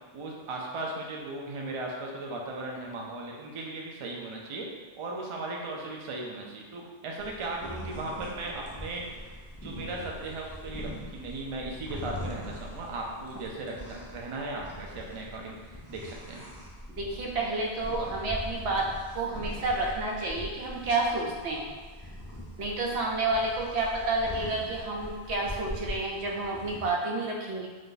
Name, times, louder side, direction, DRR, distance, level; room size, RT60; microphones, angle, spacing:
voice 1, 0.1-4.7 5.0-16.5, right 2 dB, 45° right, -1 dB, 0.4 m, -37 dB
sound 1, 7.2-26.9, equal, 25° left, 0.3 m, -42 dB
voice 2, 16.9-21.7 22.6-27.7, right 2 dB, 90° right, -2 dB, 0.9 m, -30 dB
2.6 x 2.4 x 3.8 m, 1.4 s
omnidirectional pair, 1.1 m